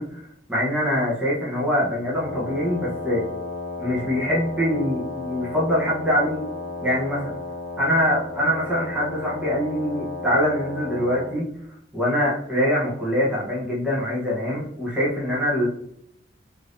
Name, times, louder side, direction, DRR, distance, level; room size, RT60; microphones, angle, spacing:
voice 1, 0.0-3.2 3.8-6.4 6.8-7.3 7.8-11.4 11.9-15.7, equal, 5° right, -7 dB, 0.8 m, -24 dB
Wind instrument woodwind instrument, 2.1-11.4, left 3 dB, 55° right, 0.9 m, -34 dB
3.4 x 2.7 x 2.5 m, 0.71 s
head